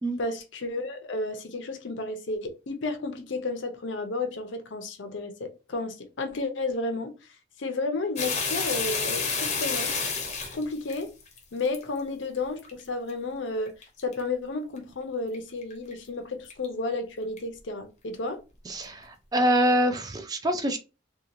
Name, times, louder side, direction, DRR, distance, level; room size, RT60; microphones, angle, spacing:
voice 1, 0.2-7.1 7.6-9.9 10.5-11.1 11.5-13.7 14.0-18.4, left 3 dB, 75° left, 0.6 m, -32 dB
sound 1, 8.2-11.8 12.3-12.7 13.1-13.2 13.7-14.2 14.8-14.9 15.3-15.4 15.6-15.9 16.5-16.7 17.4-17.5, left 5 dB, 35° left, 0.6 m, -29 dB
voice 2, 18.7-20.8, equal, 20° right, 0.3 m, -25 dB
2.8 x 2.2 x 2.5 m
head